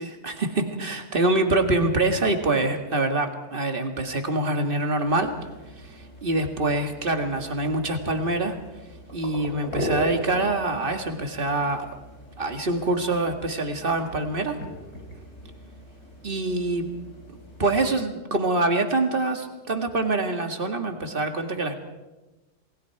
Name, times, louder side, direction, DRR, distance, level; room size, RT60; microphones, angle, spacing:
voice 1, 0.0-5.3 5.8-8.6 9.1-11.9 12.4-14.6 16.2-16.9 17.3-21.7, right 2 dB, 35° right, 5 dB, 2.1 m, -25 dB
sound 1, 5.0-17.9, left 1 dB, 90° left, 4.6 m, -39 dB
28.0 x 20.0 x 4.7 m, 1.1 s
omnidirectional pair, 1.6 m